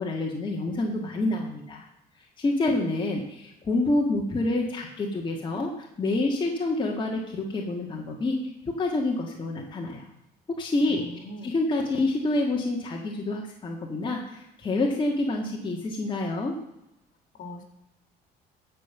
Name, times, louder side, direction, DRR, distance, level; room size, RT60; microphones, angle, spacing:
voice 1, 0.0-1.9 2.4-10.0 10.5-11.0 11.4-16.6, left 2 dB, 30° left, 0 dB, 1.7 m, -27 dB
voice 2, 10.8-11.5 17.3-17.6, left 1 dB, 50° left, 5 dB, 2.6 m, -41 dB
13.5 x 5.3 x 7.1 m, 0.91 s
cardioid pair, 110°, 17 cm